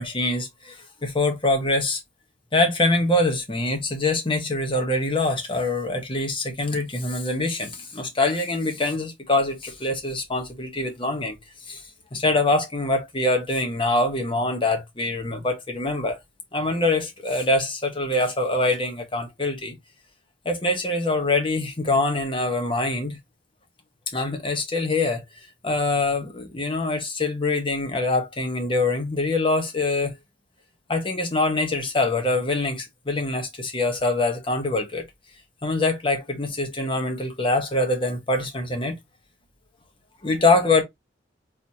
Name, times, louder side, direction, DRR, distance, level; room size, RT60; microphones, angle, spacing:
voice 1, 0.0-2.0 2.5-11.4 11.7-11.8 12.1-16.2 16.5-19.7 20.4-23.2 24.1-25.2 25.6-30.1 30.9-35.0 35.6-38.9 40.2-40.8, left 2 dB, 30° left, 1.1 m, -24 dB
4.1 x 2.9 x 2.8 m
head